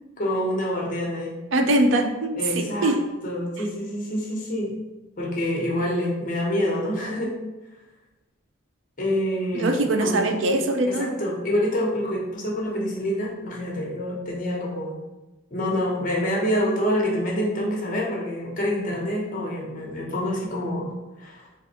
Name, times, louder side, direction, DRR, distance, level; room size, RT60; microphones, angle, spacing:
voice 1, 0.2-1.4 2.4-3.0 3.2-4.7 5.2-7.4 9.0-10.3 10.9-15.0 15.5-20.9 21.2-21.5, equal, 45° left, -2 dB, 1.0 m, -26 dB
voice 2, 1.5-3.0 9.5-11.1, right 1 dB, 75° right, 6 dB, 0.5 m, -22 dB
4.0 x 2.6 x 4.2 m, 1.1 s
head